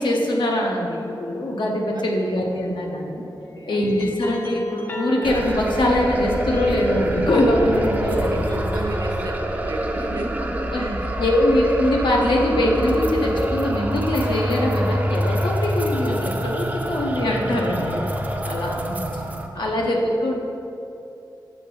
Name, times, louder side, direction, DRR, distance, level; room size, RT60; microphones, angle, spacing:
voice 1, 0.0-3.2 3.7-8.6 10.7-18.0 18.4-18.9 19.5-20.4, left 1 dB, 80° left, 0 dB, 0.9 m, -22 dB
voice 2, 1.9-2.9 3.6-3.8 7.6-11.3 19.5-19.8, right 2 dB, 55° right, 1 dB, 0.7 m, -35 dB
sound 1, 2.5-2.8 3.5-7.6 8.2-9.3, equal, 30° left, 0.5 m, -41 dB
sound 2, 5.2-19.5, equal, 20° right, 0.5 m, -26 dB
6.6 x 4.2 x 5.2 m, 2.9 s
wide cardioid pair, 120°, 8 cm